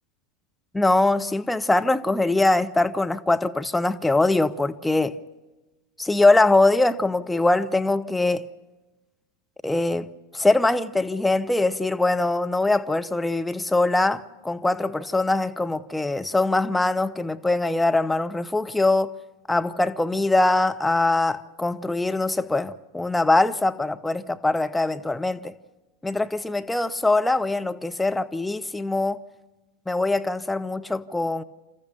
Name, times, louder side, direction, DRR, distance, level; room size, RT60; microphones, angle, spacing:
voice 1, 0.7-5.2 6.0-8.5 9.6-10.1 10.3-19.1 19.5-25.5 26.0-29.2 29.9-31.4, left 2 dB, 5° left, 0.7 m, -22 dB
28.5 x 14.0 x 6.9 m
figure-of-eight pair, 85°, 0 cm